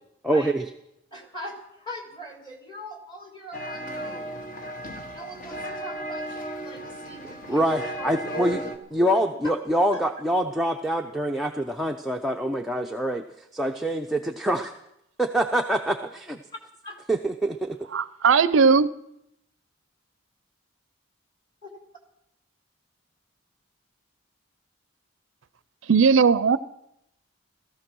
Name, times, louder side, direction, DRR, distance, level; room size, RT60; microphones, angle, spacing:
voice 1, 0.2-0.6 7.5-8.6 8.9-14.7 15.2-16.4 17.1-17.8, right 1 dB, ahead, 0.6 m, -25 dB
voice 2, 1.1-4.3 4.9-8.7 9.0-9.5 16.8-17.0 21.6-21.7, equal, 20° left, 3.0 m, -40 dB
sound 1, 3.5-8.8, equal, 40° left, 1.4 m, -35 dB
voice 3, 17.9-18.9 25.9-26.6, right 5 dB, 75° right, 0.5 m, -18 dB
16.5 x 14.0 x 6.2 m
head